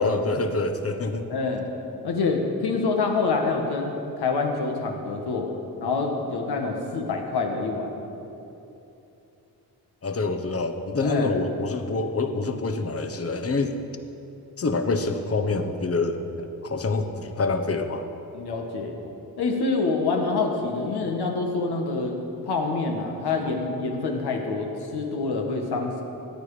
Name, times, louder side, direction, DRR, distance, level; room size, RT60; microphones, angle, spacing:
voice 1, 0.0-1.3 10.0-13.8 14.6-18.1, left 3 dB, 40° left, 7 dB, 1.0 m, -26 dB
voice 2, 1.3-1.7 2.0-5.5 5.8-7.9 11.0-11.3 18.3-19.0 19.4-22.2 22.4-26.0, left 4 dB, 80° left, 2 dB, 1.8 m, -26 dB
14.5 x 9.7 x 5.0 m, 2.9 s
cardioid pair, 90°, 38 cm